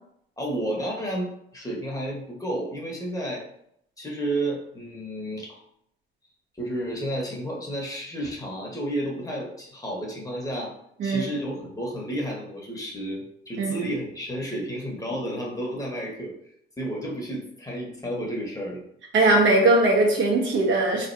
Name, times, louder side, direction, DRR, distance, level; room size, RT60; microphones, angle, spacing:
voice 1, 0.4-3.4 4.0-5.6 6.6-10.7 11.0-16.3 16.8-18.8, right 1 dB, 15° left, -2 dB, 1.2 m, -31 dB
voice 2, 11.0-11.3 13.6-13.7 19.1-21.1, right 2 dB, 70° right, -2 dB, 1.3 m, -20 dB
3.9 x 3.2 x 2.7 m, 0.72 s
cardioid pair, 90°, 20 cm